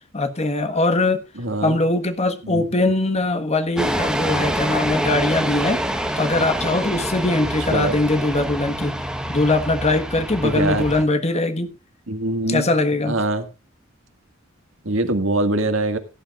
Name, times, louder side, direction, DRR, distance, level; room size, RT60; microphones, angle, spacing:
voice 1, 0.1-1.2 1.6-5.8 6.2-8.9 9.3-11.7 12.5-13.2, left 2 dB, 35° left, 1.5 m, -21 dB
voice 2, 1.4-1.8 2.4-2.6 7.7-8.0 10.4-10.8 12.1-12.7 13.1-13.5 14.8-16.0, right 2 dB, 75° right, 2.0 m, -23 dB
sound 1, 3.8-11.0, right 1 dB, 5° right, 1.3 m, -26 dB
17.5 x 11.0 x 2.5 m
head